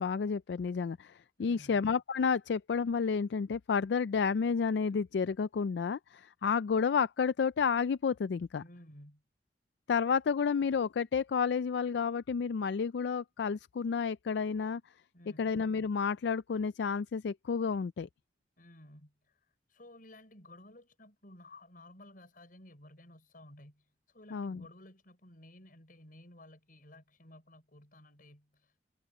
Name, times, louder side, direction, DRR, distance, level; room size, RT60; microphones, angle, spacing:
voice 1, 0.0-8.6 9.9-14.8 15.4-18.1 24.3-24.6, left 6 dB, 70° left, 0.4 m, -31 dB
voice 2, 1.4-1.8 8.5-9.2 15.1-15.6 18.6-19.4 19.7-23.9 24.1-28.7, left 1 dB, 50° left, 6.3 m, -55 dB
head